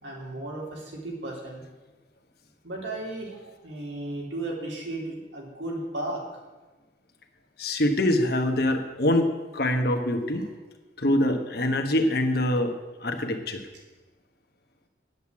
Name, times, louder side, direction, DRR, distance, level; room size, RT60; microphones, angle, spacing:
voice 1, 0.0-1.6 2.6-6.2, right 2 dB, 75° right, -2 dB, 3.3 m, -35 dB
voice 2, 7.6-10.4 11.0-12.7 13.0-13.6, left 1 dB, 60° left, 5 dB, 1.3 m, -24 dB
9.4 x 8.0 x 8.5 m, 1.2 s
head